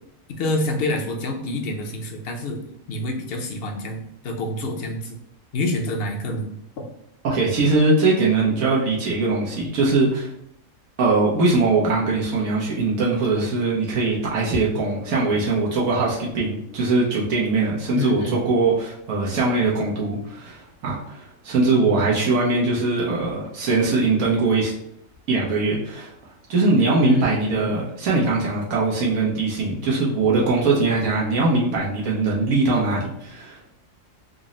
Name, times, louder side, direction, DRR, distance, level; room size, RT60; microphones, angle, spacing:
voice 1, 0.4-2.6 2.9-5.2 5.5-6.5 17.9-18.4 21.8-22.2 27.0-27.7, left 1 dB, 55° left, 2 dB, 0.7 m, -27 dB
voice 2, 7.2-10.3 11.0-24.7 25.3-26.1 26.5-33.6, right 3 dB, 90° right, -5 dB, 1.3 m, -21 dB
3.9 x 2.0 x 3.7 m, 0.75 s
omnidirectional pair, 1.4 m